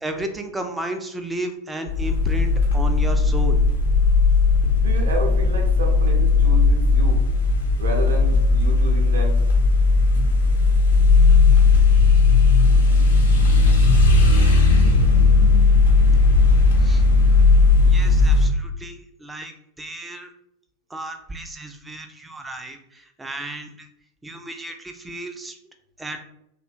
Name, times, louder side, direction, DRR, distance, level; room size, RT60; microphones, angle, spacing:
voice 1, 0.0-3.6 13.6-13.7 16.8-17.0 17.9-19.5 19.8-20.3 20.9-23.9 24.2-25.6 26.0-26.2, right 2 dB, 10° right, 5 dB, 0.3 m, -33 dB
sound 1, 1.9-18.5, left 3 dB, 65° left, 0.5 m, -16 dB
voice 2, 4.7-7.2 7.8-9.4 13.5-14.2 14.8-15.6 15.8-15.9, right 2 dB, 65° right, 1 dB, 0.6 m, -32 dB
2.6 x 2.1 x 2.4 m, 0.81 s
figure-of-eight pair, 90°, 0 cm